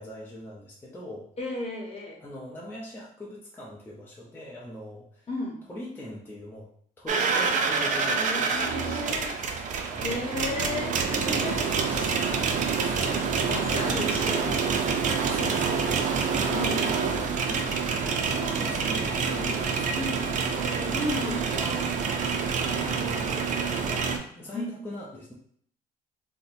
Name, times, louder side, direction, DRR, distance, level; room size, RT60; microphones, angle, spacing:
voice 1, 0.0-1.3 2.2-5.3 5.7-6.7 7.0-10.4 11.0-11.5 11.8-13.6 15.2-16.7 17.4-23.5 23.8-25.3, left 1 dB, 10° left, -5 dB, 0.6 m, -42 dB
voice 2, 1.4-2.2 5.3-5.6 8.0-9.3 9.9-11.7 13.0-14.7 16.5-17.1 20.0-20.3 20.9-21.7 24.5-24.8, left 2 dB, 35° left, 0 dB, 1.0 m, -34 dB
sound 1, 7.1-24.2, right 5 dB, 50° right, 0.5 m, -27 dB
2.8 x 2.1 x 4.1 m, 0.62 s
cardioid pair, 110°, 17 cm